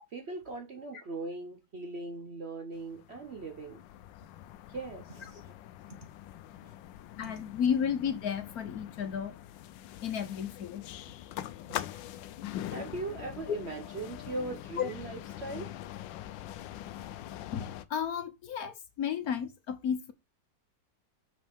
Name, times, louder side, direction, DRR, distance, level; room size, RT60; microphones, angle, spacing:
voice 1, 0.1-3.8 4.7-5.5 5.9-6.1 6.6-6.8 11.7-11.8 12.6-15.7, right 3 dB, 50° right, 0.8 m, -40 dB
sound 1, 2.8-17.9, left 13 dB, 85° left, 1.3 m, -43 dB
voice 2, 7.2-9.4 10.0-10.9 13.5-13.6 14.8-14.9 17.5-20.1, left 8 dB, 60° left, 1.2 m, -32 dB
6.4 x 5.7 x 3.5 m
omnidirectional pair, 1.9 m